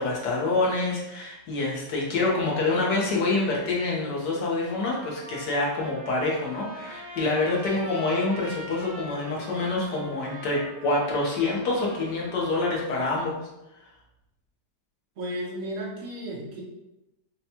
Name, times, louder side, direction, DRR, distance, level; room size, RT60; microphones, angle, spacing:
voice 1, 0.0-13.3, left 2 dB, 75° left, -3 dB, 1.6 m, -26 dB
Trumpet, 4.9-12.9, right 1 dB, 15° right, 1.4 m, -43 dB
voice 2, 15.2-16.6, right 1 dB, 55° right, -3 dB, 1.1 m, -34 dB
5.7 x 2.3 x 2.8 m, 0.94 s
omnidirectional pair, 1.9 m